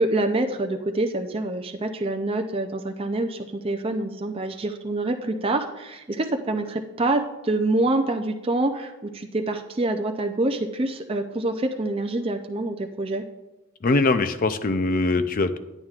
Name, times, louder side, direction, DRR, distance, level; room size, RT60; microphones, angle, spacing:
voice 1, 0.0-13.2, right 2 dB, 25° right, 5 dB, 0.4 m, -26 dB
voice 2, 13.8-15.6, left 3 dB, 40° left, 10 dB, 0.4 m, -22 dB
11.0 x 8.9 x 2.4 m, 1.0 s
head